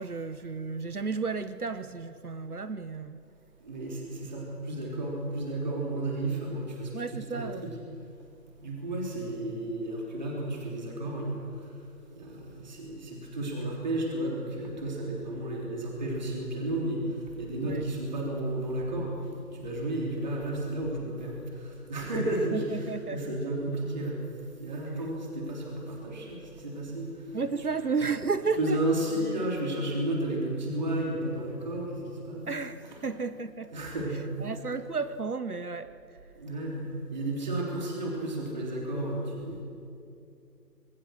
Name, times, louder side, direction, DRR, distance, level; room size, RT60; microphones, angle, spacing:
voice 1, 0.0-3.2 6.9-7.7 17.6-17.8 22.1-22.3 22.5-23.4 27.3-28.8 32.5-33.7 34.4-36.0, right 4 dB, 65° right, 12 dB, 1.1 m, -33 dB
voice 2, 3.6-7.7 8.6-11.4 12.2-17.0 17.4-19.1 19.4-21.3 21.6-24.2 24.6-27.1 28.6-32.0 32.3-32.5 32.9-33.0 33.7-34.2 36.4-39.6, right 1 dB, 25° right, -1 dB, 3.5 m, -32 dB
27.5 x 21.0 x 6.4 m, 2.5 s
figure-of-eight pair, 165°, 49 cm